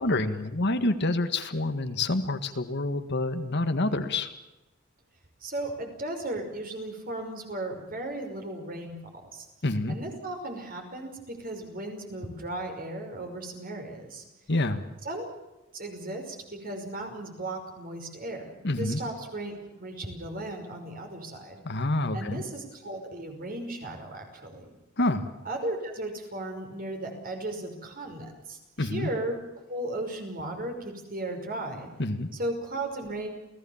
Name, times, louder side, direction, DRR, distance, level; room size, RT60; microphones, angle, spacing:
voice 1, 0.0-4.3 9.6-10.0 14.5-14.8 18.6-19.0 21.6-22.4 25.0-25.2 28.8-29.1 32.0-32.3, left 2 dB, 55° left, 9 dB, 1.7 m, -27 dB
voice 2, 5.4-9.5 9.9-14.2 15.0-15.3 15.7-21.6 22.1-24.8 25.4-31.9 32.3-33.3, right 1 dB, 45° right, 4 dB, 5.6 m, -36 dB
29.0 x 17.5 x 7.3 m, 1.0 s
head